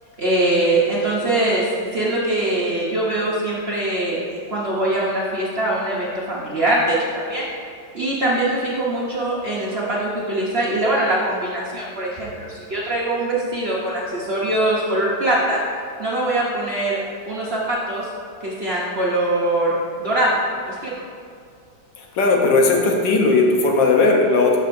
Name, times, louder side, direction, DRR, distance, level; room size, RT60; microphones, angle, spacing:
voice 1, 0.2-7.4 7.9-15.6 16.0-17.0 17.3-18.1 18.4-19.7 20.0-20.4 20.7-20.9, right 1 dB, 45° right, -5 dB, 0.9 m, -22 dB
voice 2, 22.0-24.6, left 3 dB, 75° left, 0 dB, 1.5 m, -17 dB
12.0 x 5.4 x 2.6 m, 2.3 s
omnidirectional pair, 2.0 m